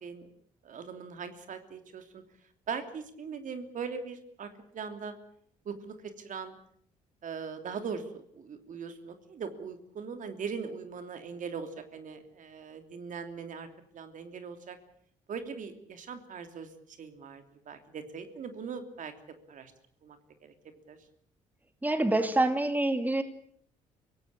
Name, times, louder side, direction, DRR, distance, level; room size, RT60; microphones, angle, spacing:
voice 1, 0.6-2.2 2.7-5.1 5.6-6.6 7.2-13.7 13.9-14.8 15.3-19.1 19.5-19.7 20.0-20.2 20.4-20.5 20.9-21.0, right 6 dB, 60° right, 8 dB, 3.0 m, -40 dB
voice 2, 21.8-23.2, right 2 dB, 10° right, 9 dB, 2.3 m, -26 dB
24.0 x 17.0 x 8.7 m, 0.66 s
supercardioid pair, 70°, 15 cm